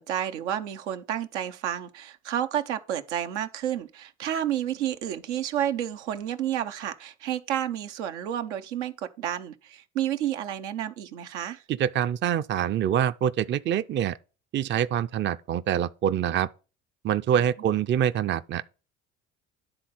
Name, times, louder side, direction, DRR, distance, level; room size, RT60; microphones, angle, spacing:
voice 1, 0.0-11.6, right 10 dB, 85° right, 0.8 m, -30 dB
voice 2, 11.7-14.2 14.5-16.5 17.0-18.6, right 9 dB, 35° right, 0.5 m, -25 dB
10.5 x 3.8 x 5.7 m
hypercardioid pair, 70°, 34 cm